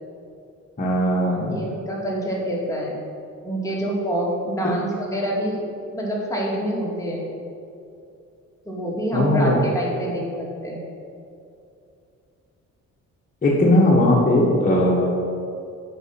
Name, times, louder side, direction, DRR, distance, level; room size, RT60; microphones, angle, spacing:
voice 1, 0.8-1.6 9.1-9.6 13.4-15.1, left 1 dB, 30° left, -5 dB, 1.5 m, -18 dB
voice 2, 1.5-3.0 3.4-5.6 5.9-7.3 8.7-10.8, equal, 10° left, -4 dB, 2.2 m, -26 dB
8.0 x 5.2 x 5.9 m, 2.5 s
cardioid pair, 90°, 30 cm